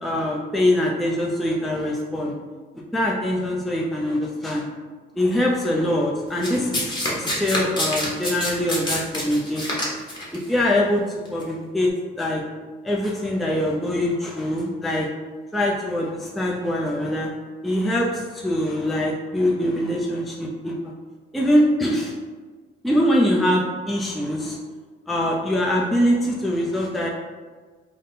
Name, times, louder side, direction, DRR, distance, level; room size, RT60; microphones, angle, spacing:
voice 1, 0.0-2.3 2.9-4.7 5.2-9.9 10.5-11.0 11.3-11.9 12.2-12.4 12.8-15.1 15.5-17.3 17.6-20.9 21.3-22.1 22.8-24.6 25.1-27.1, left 1 dB, ahead, -3 dB, 0.4 m, -23 dB
Domestic sounds home sounds, 6.4-10.4 11.2-11.4, left 1 dB, 20° left, 1.1 m, -26 dB
3.6 x 2.1 x 3.9 m, 1.4 s
cardioid pair, 90°, 20 cm